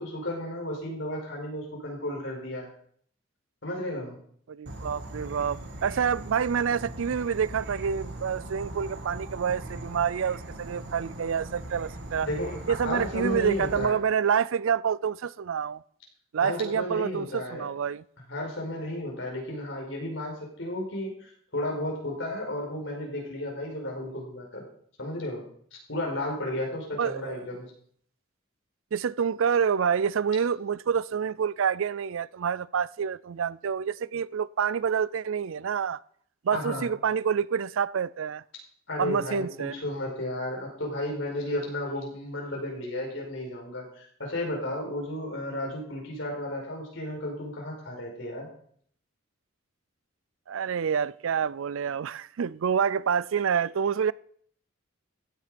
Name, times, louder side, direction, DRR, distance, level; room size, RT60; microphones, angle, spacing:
voice 1, 0.0-2.7 3.6-4.2 12.2-14.0 16.4-17.7 18.3-24.6 25.0-25.5 25.9-27.7 36.5-36.9 38.9-48.5, left 1 dB, 65° left, 5.0 m, -33 dB
voice 2, 4.5-12.3 12.7-15.8 16.3-18.0 27.0-27.4 28.9-36.0 36.4-38.4 39.0-39.8 50.5-54.1, right 7 dB, 70° right, 0.4 m, -27 dB
Insect / Frog, 4.7-13.9, right 1 dB, 55° right, 2.2 m, -40 dB
15.5 x 9.7 x 5.2 m
head